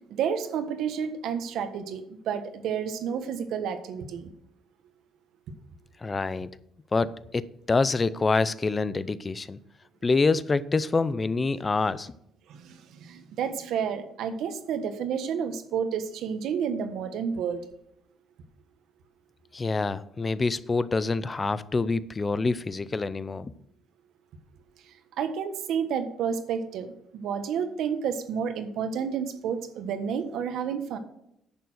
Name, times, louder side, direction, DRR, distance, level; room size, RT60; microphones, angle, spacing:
voice 1, 0.1-4.3 12.5-17.6 24.8-31.0, right 7 dB, 75° right, 1.4 m, -30 dB
voice 2, 6.0-6.5 6.9-9.6 10.0-12.1 19.5-23.5, left 3 dB, 20° left, 0.5 m, -26 dB
10.5 x 6.9 x 6.4 m
cardioid pair, 145°, 0 cm